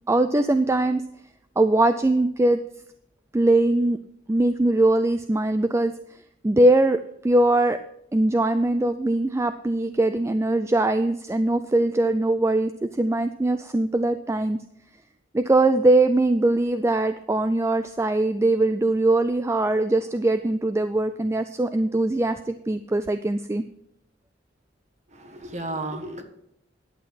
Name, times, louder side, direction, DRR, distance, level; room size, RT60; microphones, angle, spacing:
voice 1, 0.1-1.0 1.6-2.6 3.3-4.0 4.3-5.9 6.4-7.0 7.2-7.8 8.1-14.6 15.3-23.6, right 2 dB, 15° right, 10 dB, 0.3 m, -21 dB
voice 2, 25.1-26.2, right 2 dB, 35° right, 6 dB, 1.5 m, -33 dB
11.0 x 8.4 x 5.5 m, 0.75 s
head